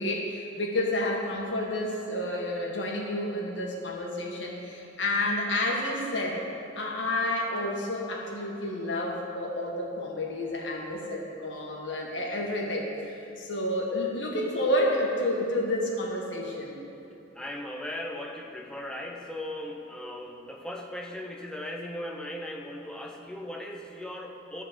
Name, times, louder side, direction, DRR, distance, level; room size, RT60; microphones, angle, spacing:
voice 1, 0.0-6.4 6.8-16.8, left 1 dB, 80° left, -1 dB, 1.7 m, -30 dB
voice 2, 17.3-24.6, left 1 dB, 5° left, 0 dB, 0.8 m, -38 dB
12.5 x 4.4 x 7.4 m, 2.7 s
head